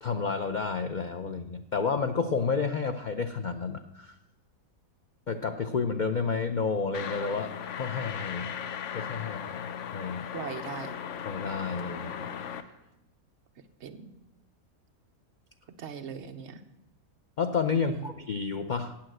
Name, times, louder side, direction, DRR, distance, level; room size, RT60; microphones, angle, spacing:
voice 1, 0.0-4.2 5.3-8.6 8.9-10.2 11.2-12.3 12.6-12.7 17.4-18.9, left 5 dB, 80° left, 7 dB, 0.4 m, -31 dB
sound 1, 6.9-12.6, left 8 dB, 60° left, 0.9 m, -37 dB
voice 2, 10.3-10.9 13.8-14.1 15.8-16.6 17.8-18.1, right 7 dB, 55° right, 7 dB, 1.0 m, -39 dB
8.6 x 8.5 x 7.7 m, 0.91 s
omnidirectional pair, 1.5 m